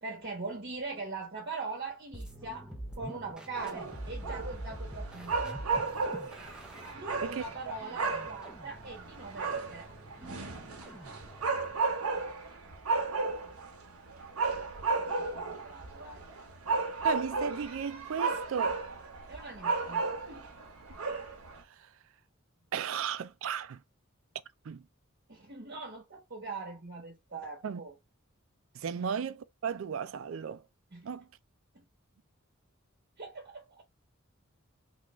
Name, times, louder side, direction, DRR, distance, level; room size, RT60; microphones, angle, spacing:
voice 1, 0.0-5.4 6.9-9.9 15.2-16.3 19.3-20.5 25.3-27.9 29.0-29.1 30.9-31.1 31.7-31.8 33.2-33.8, right 3 dB, 50° right, 1.2 m, -42 dB
sound 1, 2.1-11.8, right 1 dB, 5° right, 0.6 m, -45 dB
sound 2, 3.5-21.6, right 4 dB, 85° right, 1.0 m, -34 dB
voice 2, 7.2-7.7 17.0-18.8 21.7-21.9 22.7-23.8 24.6-24.9 27.6-27.8 28.7-30.6 31.0-31.3, right 7 dB, 65° right, 0.4 m, -35 dB
3.7 x 2.4 x 3.0 m
head